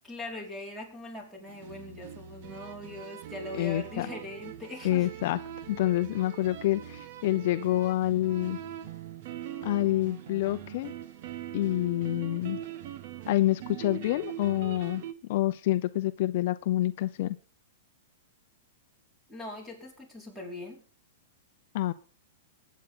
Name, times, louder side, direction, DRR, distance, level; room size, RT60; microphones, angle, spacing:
voice 1, 0.0-5.1 19.3-20.8, left 2 dB, 5° right, 5.0 m, -41 dB
sound 1, 1.5-15.1, right 11 dB, 45° right, 1.6 m, -42 dB
voice 2, 3.5-4.1 4.8-5.4 5.7-8.6 9.6-10.9 11.5-12.6 13.3-15.0 15.3-17.4 21.7-21.9, left 15 dB, 45° left, 0.7 m, -27 dB
22.5 x 9.4 x 3.9 m
hypercardioid pair, 160°, 0 cm